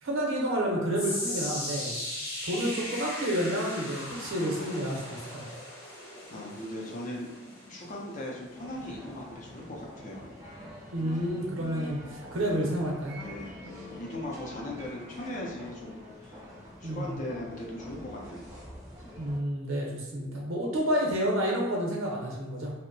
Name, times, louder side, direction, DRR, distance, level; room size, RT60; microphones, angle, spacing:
voice 1, 0.0-1.9 2.4-5.4 10.9-13.2 16.8-17.1 19.2-22.7, equal, 85° right, -2 dB, 0.7 m, -30 dB
sound 1, 0.9-13.3 13.6-13.9 14.6-14.7, left 1 dB, 80° left, 0.8 m, -40 dB
voice 2, 6.3-7.3 7.7-10.3 13.2-16.4 16.8-18.5, left 1 dB, 40° left, -2 dB, 0.5 m, -39 dB
sound 2, 8.5-19.4, equal, 15° right, 0.5 m, -46 dB
2.7 x 2.1 x 2.6 m, 1.1 s
head